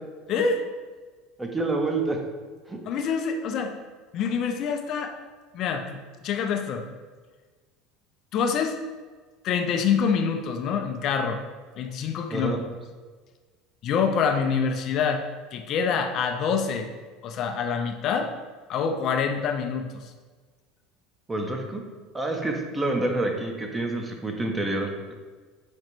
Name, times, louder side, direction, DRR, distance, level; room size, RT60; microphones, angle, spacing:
voice 1, 0.3-0.6 2.9-3.7 4.1-5.1 5.5-6.8 8.3-8.7 9.4-11.4 11.8-12.5 13.8-15.2 15.5-16.9 17.2-18.3 18.7-19.9, left 6 dB, 55° left, 5 dB, 0.3 m, -26 dB
voice 2, 1.4-2.2 2.7-2.8 12.3-12.6 21.3-21.8 22.1-25.1, right 2 dB, 15° right, 3 dB, 0.6 m, -28 dB
4.9 x 2.1 x 3.0 m, 1.4 s
supercardioid pair, 90°, 0 cm